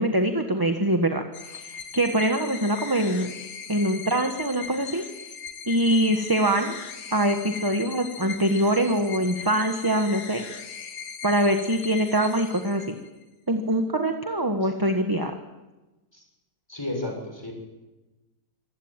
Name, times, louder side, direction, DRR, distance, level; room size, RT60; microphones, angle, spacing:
voice 1, 0.0-3.3 3.7-5.0 5.7-6.8 7.1-10.4 11.2-12.9 13.5-15.3, right 1 dB, 15° right, 5 dB, 1.3 m, -24 dB
sound 1, 1.3-13.2, left 6 dB, 65° left, 2.0 m, -39 dB
voice 2, 16.7-17.5, left 2 dB, 15° left, 1 dB, 6.6 m, -32 dB
26.0 x 15.5 x 9.1 m, 1.1 s
omnidirectional pair, 1.9 m